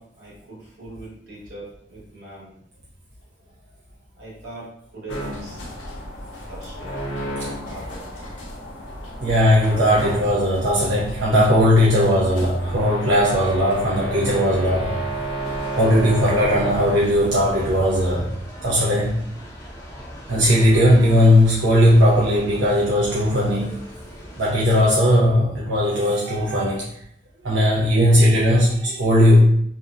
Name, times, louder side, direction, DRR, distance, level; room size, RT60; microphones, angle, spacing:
voice 1, 0.0-2.5 4.2-5.6 6.5-7.0 7.6-8.3, right 2 dB, 60° right, -7 dB, 1.1 m, -40 dB
sound 1, 5.1-18.1, right 1 dB, 85° left, 0.6 m, -32 dB
voice 2, 9.2-14.9 15.7-18.3 18.6-19.2 20.3-23.8 24.4-26.9 27.4-29.5, equal, 90° right, -6 dB, 0.5 m, -18 dB
sound 2, 15.4-24.6, equal, 15° left, 0.5 m, -39 dB
2.5 x 2.1 x 2.4 m, 0.70 s
head